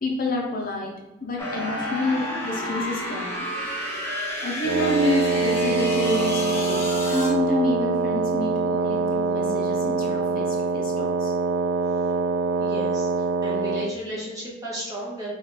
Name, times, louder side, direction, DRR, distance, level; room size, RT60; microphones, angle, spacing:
voice 1, 0.0-0.9 1.2-3.5 4.4-10.5 10.7-11.3, left 1 dB, 45° left, -1 dB, 0.6 m, -28 dB
sound 1, 1.4-7.3, left 1 dB, 10° left, 1.0 m, -31 dB
Wind instrument woodwind instrument, 4.6-14.0, right 3 dB, 80° right, 0.3 m, -24 dB
voice 2, 12.6-13.1 13.4-15.3, equal, 15° right, -6 dB, 1.3 m, -33 dB
4.9 x 2.4 x 4.0 m, 1.0 s
head